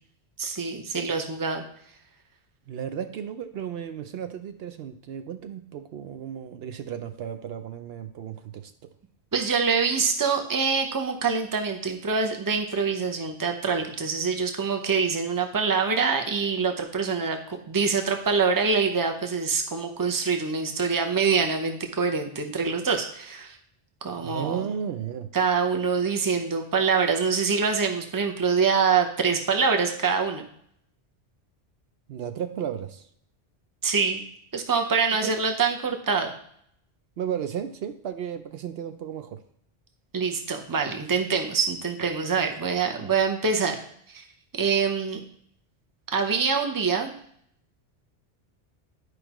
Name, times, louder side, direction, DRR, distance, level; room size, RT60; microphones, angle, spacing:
voice 1, 0.4-1.6 9.3-17.4 17.7-23.6 24.0-24.7 25.3-30.5 33.8-34.2 34.5-36.3 40.1-43.8 44.1-44.2 44.5-45.2 46.1-47.1, right 5 dB, 20° right, 4 dB, 0.7 m, -25 dB
voice 2, 2.7-8.7 24.2-25.3 32.1-33.0 35.2-35.3 37.2-39.4 43.0-43.1, right 8 dB, 75° right, 8 dB, 0.8 m, -34 dB
11.0 x 4.9 x 3.0 m, 0.68 s
omnidirectional pair, 1.1 m